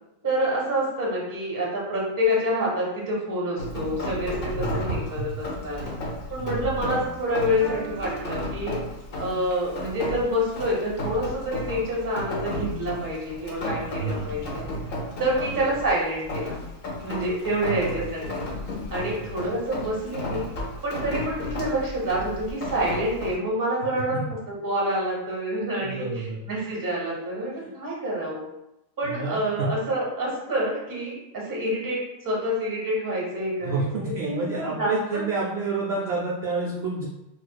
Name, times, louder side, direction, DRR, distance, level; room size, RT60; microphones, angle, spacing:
voice 1, 0.2-5.8 6.3-8.8 9.2-14.6 15.2-16.6 17.0-18.4 18.9-20.4 20.8-24.2 24.6-28.5 29.0-35.2, equal, 20° right, -4 dB, 0.5 m, -27 dB
Rain, 3.6-23.4, left 1 dB, 55° left, 0.6 m, -34 dB
voice 2, 4.5-5.0 6.4-6.8 13.9-14.8 15.5-15.6 19.0-19.5 25.8-26.5 27.6-27.7 29.0-29.7 33.6-37.1, right 4 dB, 75° right, -3 dB, 0.5 m, -30 dB
Piano, 7.6-14.2 15.0-15.1, right 3 dB, 30° left, 1.3 m, -47 dB
4.3 x 2.4 x 2.2 m, 0.88 s
omnidirectional pair, 1.6 m